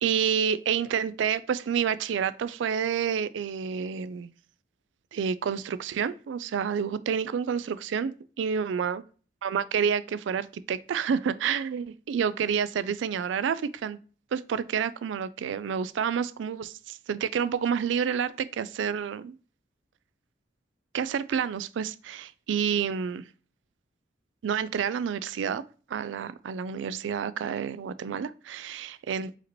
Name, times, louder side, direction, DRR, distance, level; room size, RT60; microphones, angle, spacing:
voice 1, 0.0-4.3 5.1-9.0 9.4-14.0 14.3-19.4 20.9-23.2 24.4-25.6 25.9-29.4, right 7 dB, 90° right, 0.3 m, -29 dB
4.9 x 3.0 x 2.9 m
head